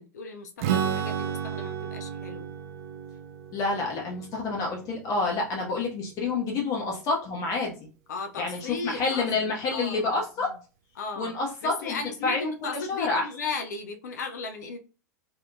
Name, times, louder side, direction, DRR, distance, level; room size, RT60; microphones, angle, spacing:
voice 1, 0.0-2.5 8.1-9.3 9.7-10.1 10.4-10.5 11.0-11.3 11.6-14.8, left 4 dB, 70° left, 5 dB, 0.5 m, -36 dB
Strum, 0.6-6.2, right 8 dB, 55° right, 0.5 m, -33 dB
voice 2, 3.5-7.9 8.4-10.5 11.2-13.2, left 3 dB, 35° left, -1 dB, 0.8 m, -28 dB
2.7 x 2.6 x 2.2 m, 0.33 s
figure-of-eight pair, 90°, 10 cm